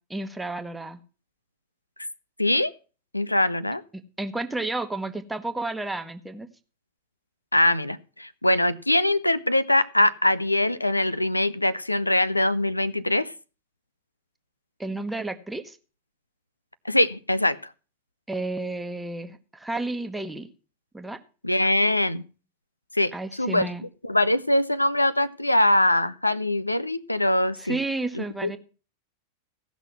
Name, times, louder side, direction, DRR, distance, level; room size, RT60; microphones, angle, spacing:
voice 1, 0.1-1.0 4.2-6.5 14.8-15.8 18.3-20.5 20.9-21.2 23.1-23.8 27.6-28.6, right 2 dB, 5° right, 9 dB, 1.1 m, -31 dB
voice 2, 2.4-2.7 3.1-3.8 7.5-13.3 16.8-17.6 21.4-22.2 22.9-23.1 23.4-23.7 24.0-27.8 28.1-28.6, left 1 dB, 85° left, 15 dB, 0.5 m, -22 dB
16.0 x 6.1 x 5.8 m, 0.36 s
figure-of-eight pair, 90°, 0 cm